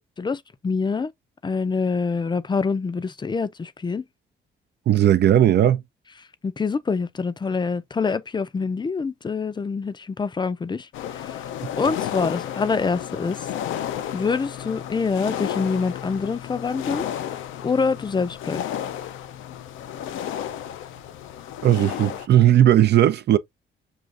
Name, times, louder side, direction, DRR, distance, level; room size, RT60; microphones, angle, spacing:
voice 1, 0.2-1.1 1.4-4.0 6.4-10.9 11.2-11.4 11.7-13.5 14.1-17.1 17.6-18.6, left 4 dB, 20° left, 0.4 m, -25 dB
voice 2, 4.9-5.8 21.6-23.4, right 11 dB, 60° right, 0.4 m, -17 dB
sound 1, 10.9-22.3, left 10 dB, 85° left, 0.5 m, -32 dB
6.3 x 2.4 x 2.4 m
cardioid pair, 90°, 20 cm